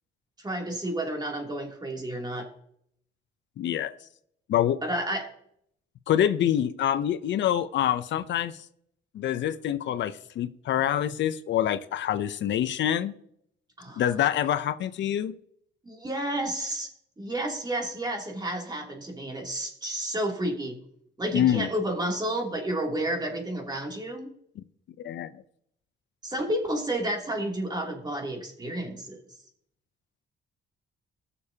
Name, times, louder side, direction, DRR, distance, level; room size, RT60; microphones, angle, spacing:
voice 1, 0.4-2.5 4.8-5.3 13.8-14.0 15.8-16.9 17.2-20.8 21.2-24.3 26.2-29.2, right 1 dB, 20° right, 1 dB, 2.8 m, -31 dB
voice 2, 3.6-3.9 4.5-4.8 6.1-8.7 9.1-13.1 14.0-15.3 21.3-21.7 25.0-25.3, left 10 dB, 65° left, 13 dB, 0.6 m, -26 dB
19.5 x 6.8 x 2.8 m, 0.71 s
cardioid pair, 90°, 20 cm